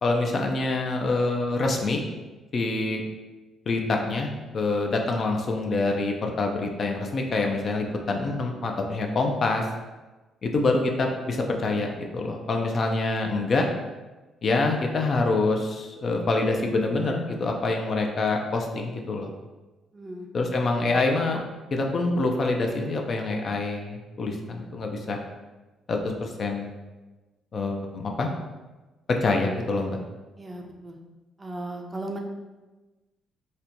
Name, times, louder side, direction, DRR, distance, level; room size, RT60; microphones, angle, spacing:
voice 1, 0.0-2.0 2.5-3.0 3.7-9.7 10.4-13.7 14.4-19.3 20.3-21.4 21.7-25.2 25.9-26.7 27.5-28.3 29.2-30.0, left 3 dB, 50° left, 2 dB, 0.4 m, -26 dB
voice 2, 19.9-20.3 30.4-31.0 31.4-32.2, right 1 dB, 20° right, 2 dB, 0.4 m, -36 dB
4.2 x 2.2 x 2.6 m, 1.2 s
cardioid pair, 90°, 0 cm